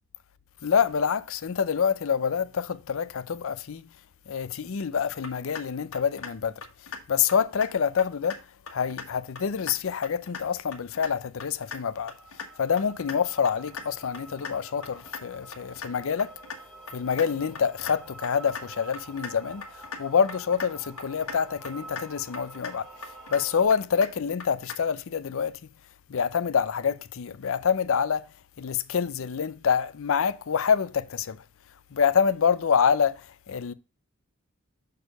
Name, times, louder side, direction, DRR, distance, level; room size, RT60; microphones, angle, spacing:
voice 1, 0.6-3.9 4.3-6.5 7.1-8.4 8.7-12.1 12.6-16.3 16.9-19.6 20.0-22.9 23.3-25.6 26.1-28.2 28.6-31.4 31.9-33.7, left 7 dB, 65° left, 0.5 m, -26 dB
sound 1, 5.2-5.6 5.9-6.3 6.6-7.0 7.3-7.7 8.0-8.4 8.7-9.1 9.4-9.7 10.0-10.4 10.7-11.1 11.4-11.8 12.1-12.5 12.8-13.2 13.5-13.8 14.1-14.5 14.8-15.2 15.5-15.9 16.2-16.6 16.9-17.3 17.6-18.0 18.2-18.6 18.9-19.3 19.6-20.0 20.3-20.7 21.0-21.4 21.7-22.1 22.3-22.7 23.0-23.4 23.7-24.1 24.4-24.8, left 5 dB, 85° left, 1.5 m, -38 dB
sound 2, 11.9-23.7, right 2 dB, ahead, 1.8 m, -47 dB
6.5 x 4.4 x 5.2 m
head